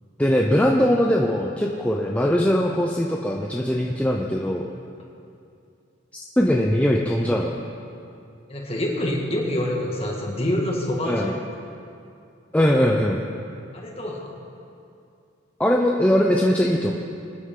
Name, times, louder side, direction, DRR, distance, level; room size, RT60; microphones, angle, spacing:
voice 1, 0.2-4.6 6.4-7.6 11.1-11.3 12.5-13.2 15.6-16.9, equal, 5° left, -1 dB, 0.6 m, -21 dB
voice 2, 8.5-11.3 13.7-14.4, left 1 dB, 30° left, -1 dB, 1.9 m, -26 dB
23.5 x 9.8 x 3.8 m, 2.5 s
head